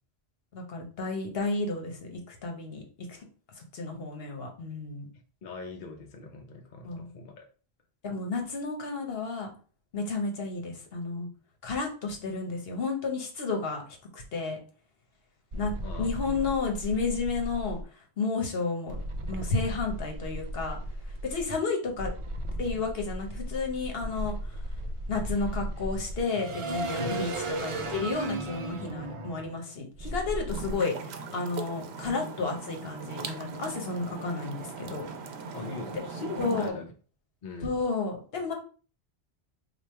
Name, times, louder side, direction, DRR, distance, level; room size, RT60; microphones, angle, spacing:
voice 1, 0.5-2.8 3.1-3.2 3.6-5.1 6.8-7.1 8.0-9.5 9.9-11.3 11.6-13.8 14.1-14.6 15.5-17.8 18.2-19.0 19.3-20.8 21.2-22.1 22.6-24.3 25.1-27.3 27.6-35.1 36.4-36.7 37.6-38.5, left 4 dB, 70° left, 2 dB, 1.1 m, -32 dB
voice 2, 5.4-7.5 15.8-16.5 27.0-27.2 35.5-36.9 37.4-37.8, left 3 dB, 55° left, 2 dB, 0.7 m, -40 dB
sound 1, 15.5-17.8 18.9-21.4 22.0-30.7, right 1 dB, 45° right, 0.4 m, -35 dB
sound 2, 30.5-36.7, right 4 dB, 80° right, 0.8 m, -39 dB
3.2 x 2.4 x 4.3 m, 0.39 s
omnidirectional pair, 1.1 m